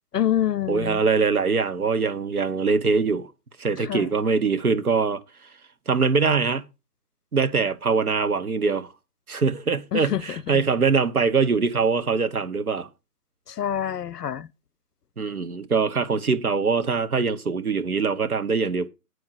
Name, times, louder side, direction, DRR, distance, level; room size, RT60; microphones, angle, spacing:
voice 1, 0.1-1.0 3.8-4.1 9.9-10.2 10.5-10.6 13.5-14.5, left 10 dB, 85° left, 0.6 m, -26 dB
voice 2, 0.7-3.3 3.6-5.2 5.9-6.6 7.3-8.9 9.3-12.9 15.2-18.9, right 5 dB, 65° right, 1.3 m, -23 dB
8.9 x 4.8 x 6.5 m
figure-of-eight pair, 155°, 47 cm